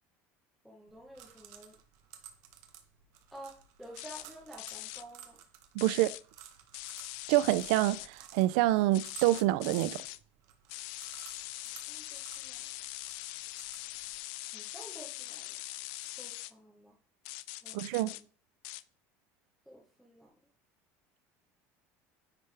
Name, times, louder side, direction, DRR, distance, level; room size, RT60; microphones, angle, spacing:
voice 1, 0.6-1.8 3.3-5.4 11.9-12.6 14.5-15.5 16.2-16.9 17.6-18.2 19.7-20.3, right 1 dB, ahead, 0.8 m, -51 dB
sound 1, 0.9-14.2, right 9 dB, 55° right, 0.9 m, -54 dB
sound 2, 4.0-4.3 4.6-5.0 5.8-6.2 6.7-8.1 8.9-10.2 10.7-16.5 17.3-18.2 18.6-18.8, left 18 dB, 65° left, 0.3 m, -42 dB
voice 2, 5.8-6.1 7.3-10.0 17.7-18.1, right 16 dB, 70° right, 0.4 m, -27 dB
9.7 x 3.3 x 3.3 m
cardioid pair, 175°, 6 cm